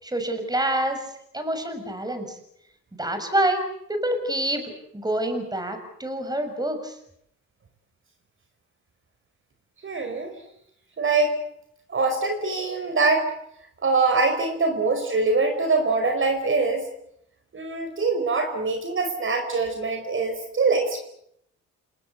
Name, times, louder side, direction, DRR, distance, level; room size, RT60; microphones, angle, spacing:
voice 1, 0.0-1.0 1.3-2.4 3.0-3.6 3.9-6.9, right 1 dB, 15° right, 7 dB, 6.6 m, -27 dB
voice 2, 9.8-10.3 11.0-11.4 11.9-13.3 13.8-16.9 17.5-21.0, right 3 dB, 40° right, 6 dB, 5.1 m, -23 dB
28.5 x 18.5 x 8.2 m, 0.74 s
cardioid pair, 90°, 30 cm